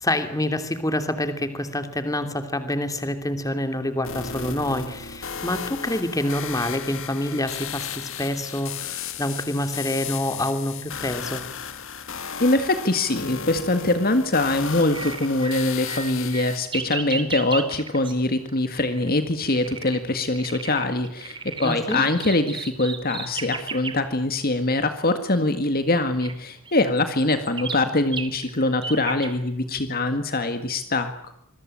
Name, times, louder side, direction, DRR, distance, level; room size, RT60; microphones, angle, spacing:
voice 1, 0.0-11.4 21.6-22.0, left 1 dB, 15° left, 8 dB, 2.8 m, -27 dB
sound 1, 4.0-16.6, left 7 dB, 60° left, 2.3 m, -35 dB
voice 2, 12.4-31.3, left 2 dB, 40° left, 8 dB, 1.9 m, -23 dB
sound 2, 14.9-18.2 18.4-19.1 19.4-20.0 20.3-24.1 25.3-25.4 26.2-26.3 26.6-29.3, right 5 dB, 20° right, 3.0 m, -34 dB
26.5 x 22.0 x 8.8 m, 0.74 s
head